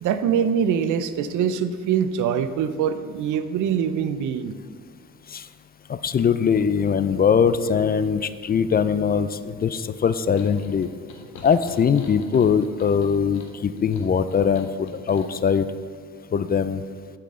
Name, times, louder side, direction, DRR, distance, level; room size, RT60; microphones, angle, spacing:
voice 1, 0.0-4.5, right 8 dB, 85° right, 11 dB, 0.6 m, -23 dB
voice 2, 5.9-10.9 11.4-15.7 16.3-16.8, left 6 dB, 30° left, 13 dB, 0.4 m, -21 dB
sound 1, 10.4-15.6, left 3 dB, 70° left, 1.4 m, -44 dB
11.5 x 5.9 x 3.7 m, 2.1 s
cardioid pair, 90°, 30 cm